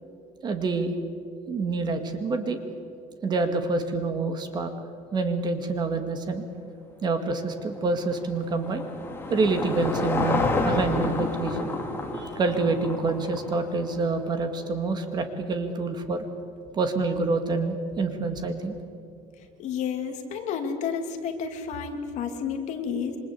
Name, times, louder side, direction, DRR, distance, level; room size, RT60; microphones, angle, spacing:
voice 1, 0.4-0.9 1.5-2.6 3.2-4.7 5.1-6.4 7.0-8.9 9.3-11.7 12.1-16.3 16.7-18.8, right 3 dB, 25° right, 7 dB, 2.1 m, -27 dB
Car passing by / Engine, 7.7-14.2, left 3 dB, 15° left, 2.5 m, -30 dB
voice 2, 19.6-23.2, left 6 dB, 45° left, 5 dB, 2.7 m, -31 dB
27.5 x 24.5 x 8.5 m, 2.4 s
cardioid pair, 170°, 16 cm